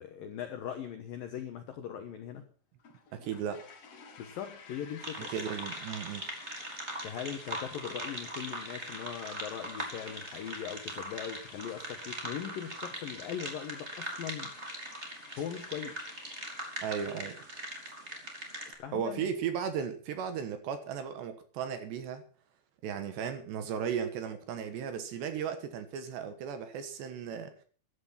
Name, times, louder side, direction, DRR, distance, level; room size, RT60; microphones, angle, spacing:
voice 1, 0.0-2.5 4.2-5.3 7.0-14.5 15.3-16.1 18.7-19.3 27.3-27.4, left 9 dB, 75° left, 2.0 m, -40 dB
sound 1, 2.8-16.6, left 6 dB, 60° left, 1.6 m, -54 dB
voice 2, 3.1-3.6 5.3-6.3 16.8-17.4 18.9-22.2 22.8-27.5, right 7 dB, 65° right, 3.1 m, -35 dB
sound 2, 5.0-18.7, right 1 dB, 20° right, 2.1 m, -41 dB
14.5 x 11.5 x 5.9 m
omnidirectional pair, 6.0 m